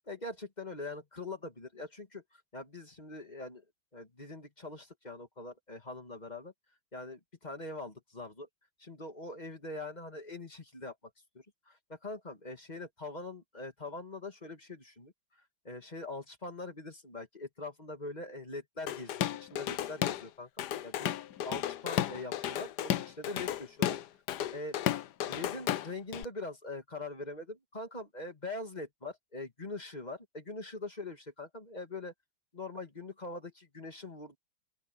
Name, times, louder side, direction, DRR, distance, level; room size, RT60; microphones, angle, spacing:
voice 1, 0.1-3.6 3.9-6.5 6.9-8.5 8.8-10.9 11.7-15.1 15.6-21.1 21.4-24.0 24.5-24.8 25.3-32.1 32.5-34.4, left 2 dB, 20° left, 2.5 m, -43 dB
Drum kit / Drum, 18.9-20.3 20.6-26.2, left 11 dB, 65° left, 1.2 m, -33 dB
open air
omnidirectional pair, 2.2 m